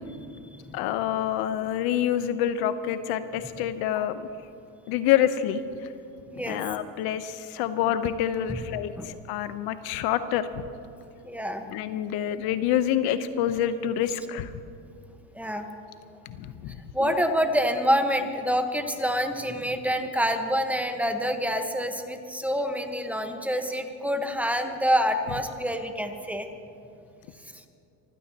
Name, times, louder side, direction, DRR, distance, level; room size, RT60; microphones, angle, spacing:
voice 1, 0.7-4.3 4.9-5.6 6.5-10.5 11.7-14.5 16.4-17.1, left 10 dB, 65° left, 11 dB, 0.9 m, -27 dB
voice 2, 6.3-6.6 8.5-8.6 9.0-9.1 11.2-11.6 15.3-15.7 16.9-26.5 27.5-27.7, equal, 5° right, 5 dB, 1.2 m, -27 dB
24.5 x 15.5 x 2.9 m, 2.6 s
supercardioid pair, 110°, 40 cm